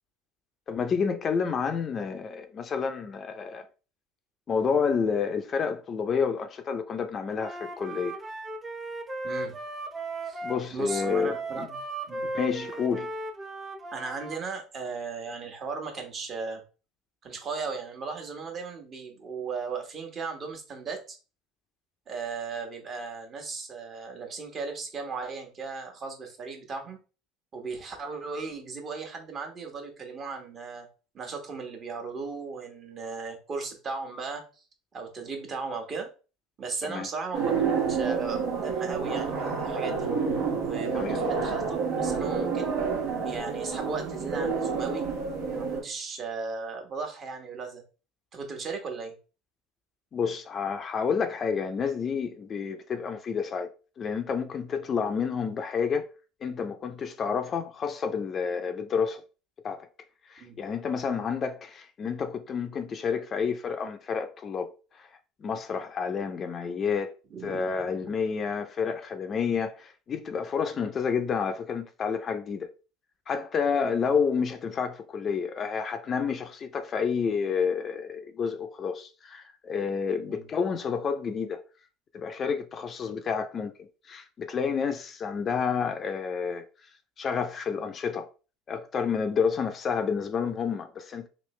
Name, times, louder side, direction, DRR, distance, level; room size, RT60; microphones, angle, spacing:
voice 1, 0.7-3.7 4.5-8.2 10.4-11.7 12.3-13.1 36.9-37.1 40.9-41.2 50.1-53.7 54.0-56.1 56.4-59.2 59.6-59.9 60.3-64.7 65.0-65.1 65.4-67.1 67.4-72.7 73.3-81.6 82.1-83.7 84.1-86.6 87.2-88.3 88.7-91.3, left 6 dB, 40° left, 0.5 m, -29 dB
Wind instrument woodwind instrument, 7.3-14.4, right 2 dB, 20° right, 0.7 m, -36 dB
voice 2, 9.2-9.6 10.2-10.4 10.7-11.8 12.1-12.2 13.9-16.6 17.2-21.2 22.1-27.0 27.5-30.9 31.1-34.4 34.9-36.1 36.6-40.1 40.6-42.7 43.2-45.0 45.5-47.8 48.3-49.1 60.4-60.6 67.3-68.1 80.3-80.4, right 4 dB, 40° right, 1.2 m, -36 dB
sound 1, 37.3-45.8, right 5 dB, 75° right, 1.5 m, -29 dB
3.1 x 2.8 x 3.2 m
supercardioid pair, 95°, 0 cm